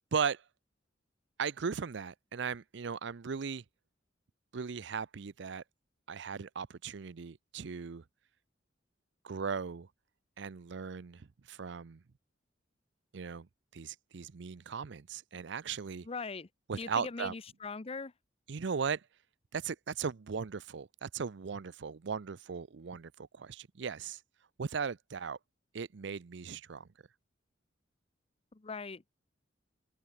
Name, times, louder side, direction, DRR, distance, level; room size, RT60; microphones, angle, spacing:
voice 1, 0.1-0.4 1.4-3.6 4.5-5.6 6.1-8.0 9.2-9.9 10.4-12.0 13.1-13.5 13.7-16.1 16.7-17.3 18.5-19.0 19.5-24.2 24.6-25.4 25.7-26.9, right 6 dB, 65° right, 0.5 m, -37 dB
voice 2, 16.0-16.5 16.8-18.1 28.5-29.0, left 4 dB, 30° left, 0.6 m, -40 dB
head